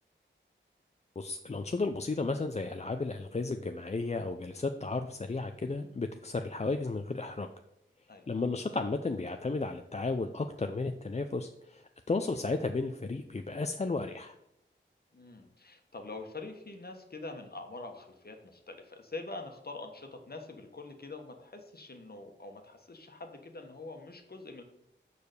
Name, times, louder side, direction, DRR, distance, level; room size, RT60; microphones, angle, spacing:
voice 1, 1.2-7.5 8.3-14.3, left 3 dB, 35° left, 6 dB, 0.5 m, -33 dB
voice 2, 15.1-24.6, left 3 dB, 50° left, 4 dB, 1.4 m, -45 dB
6.8 x 4.9 x 6.7 m, 0.80 s
wide cardioid pair, 50°, 20 cm